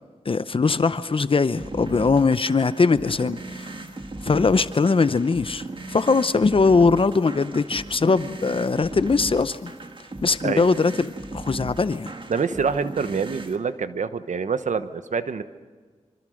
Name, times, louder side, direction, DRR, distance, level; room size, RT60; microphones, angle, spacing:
voice 1, 0.3-3.7 4.2-9.7 10.2-12.1, left 4 dB, 45° left, 0.7 m, -21 dB
sound 1, 1.6-13.6, right 2 dB, 45° right, 1.8 m, -37 dB
voice 2, 12.3-15.4, right 5 dB, 90° right, 1.1 m, -26 dB
26.0 x 25.0 x 6.5 m
wide cardioid pair, 95°, 12 cm